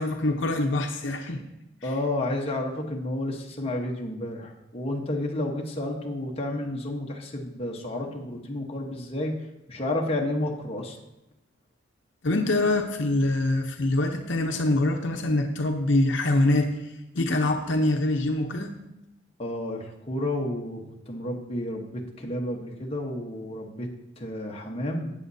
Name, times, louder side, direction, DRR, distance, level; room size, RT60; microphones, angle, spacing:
voice 1, 0.0-1.4 1.8-1.9 12.2-16.7 17.1-18.7, left 2 dB, 70° left, 4 dB, 0.8 m, -24 dB
voice 2, 1.8-9.4 9.7-11.0 19.4-23.9 24.2-25.1, left 1 dB, 30° left, 0 dB, 1.1 m, -31 dB
14.5 x 8.4 x 2.7 m, 0.93 s
head